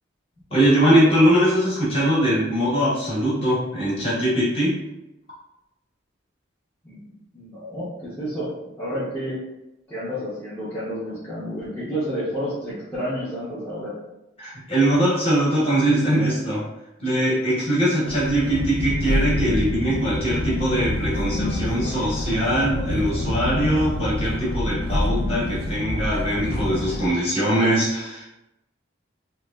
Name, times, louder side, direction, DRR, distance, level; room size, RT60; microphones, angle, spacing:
voice 1, 0.5-4.8 14.4-16.6 17.0-28.3, right 1 dB, 30° left, -7 dB, 1.0 m, -21 dB
voice 2, 7.3-8.5 8.8-9.4 9.9-13.9, equal, 10° left, -12 dB, 0.6 m, -30 dB
sound 1, 18.0-27.1, left 1 dB, 55° left, 0.4 m, -27 dB
3.0 x 2.2 x 2.2 m, 0.92 s
head